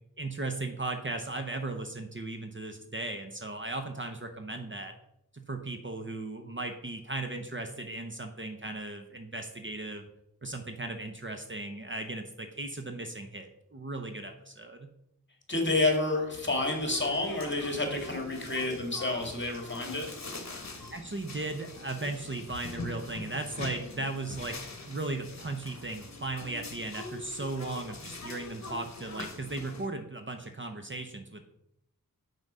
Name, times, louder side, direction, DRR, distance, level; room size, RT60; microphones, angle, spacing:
voice 1, 0.2-4.9 5.3-10.1 10.4-14.9 20.9-31.5, right 2 dB, 35° right, 5 dB, 0.8 m, -37 dB
voice 2, 15.5-20.1, left 2 dB, 30° left, 3 dB, 1.9 m, -29 dB
sound 1, 16.3-29.9, left 3 dB, 50° left, 1.2 m, -43 dB
6.0 x 5.3 x 5.4 m, 0.80 s
wide cardioid pair, 45°, 35 cm